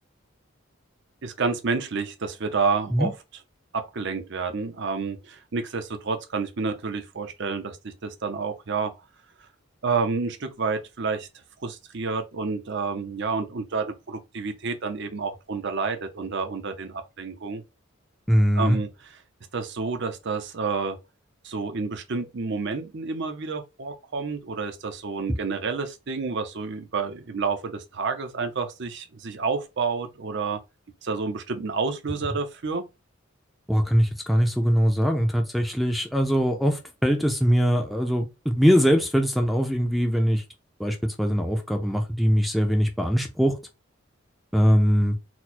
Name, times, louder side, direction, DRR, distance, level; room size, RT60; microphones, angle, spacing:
voice 1, 1.2-3.1 3.7-8.9 9.8-11.3 11.6-17.6 18.5-19.2 19.5-21.0 21.4-30.6 31.0-32.9, right 4 dB, 60° right, 0.7 m, -29 dB
voice 2, 18.3-18.8 33.7-40.4 40.8-43.6 44.5-45.2, equal, ahead, 0.6 m, -22 dB
4.3 x 2.2 x 4.2 m
head